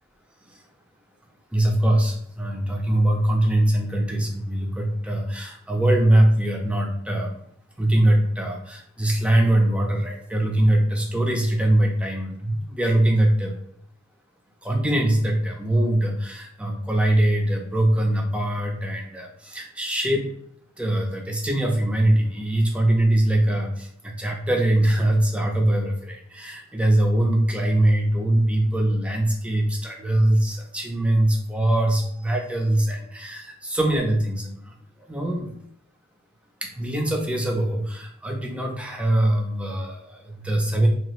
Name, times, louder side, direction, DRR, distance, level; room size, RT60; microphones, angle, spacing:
voice 1, 1.5-7.4 7.8-13.5 14.6-20.3 20.8-34.7 35.0-35.5 36.6-40.9, right 1 dB, 5° right, 0 dB, 0.4 m, -22 dB
2.8 x 2.3 x 3.1 m, 0.68 s
head